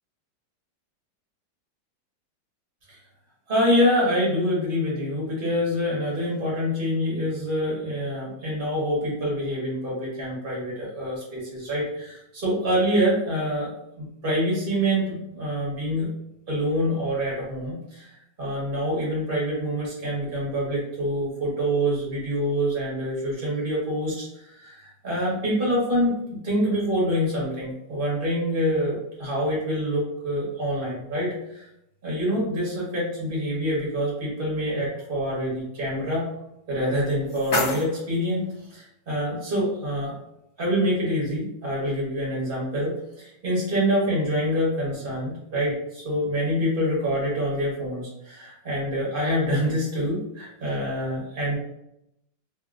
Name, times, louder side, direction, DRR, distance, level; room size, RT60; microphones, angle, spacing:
voice 1, 3.5-13.7 14.0-16.1 16.5-31.6 32.0-36.2 36.7-38.4 38.7-40.1 40.6-51.6, equal, 35° right, -5 dB, 1.3 m, -26 dB
sound 1, 36.8-38.8, left 2 dB, 55° left, 1.3 m, -31 dB
3.3 x 2.8 x 2.4 m, 0.81 s
omnidirectional pair, 1.9 m